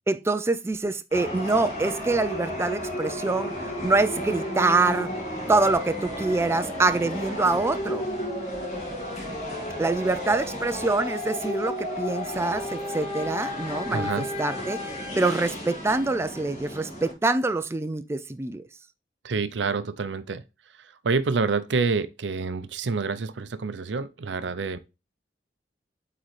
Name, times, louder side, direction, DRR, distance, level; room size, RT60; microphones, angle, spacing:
voice 1, 0.1-3.5 3.8-5.1 5.5-8.1 9.8-14.1 14.4-18.6, right 3 dB, 15° right, 0.3 m, -25 dB
sound 1, 1.1-17.1, left 1 dB, 40° left, 2.3 m, -33 dB
voice 2, 13.9-14.3 19.2-20.4 20.8-24.8, right 4 dB, 80° right, 0.6 m, -27 dB
8.1 x 3.8 x 3.2 m
head